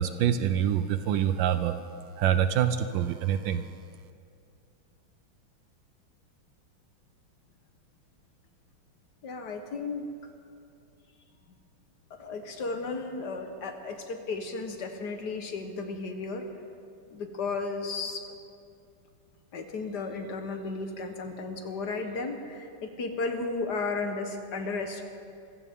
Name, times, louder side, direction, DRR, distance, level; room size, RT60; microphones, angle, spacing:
voice 1, 0.0-1.7 2.2-3.7, right 9 dB, 75° right, 10 dB, 1.2 m, -26 dB
voice 2, 9.2-10.1 12.1-16.4 17.1-18.3 19.5-25.0, left 3 dB, 55° left, 5 dB, 1.6 m, -34 dB
26.0 x 15.0 x 3.6 m, 2.4 s
omnidirectional pair, 2.3 m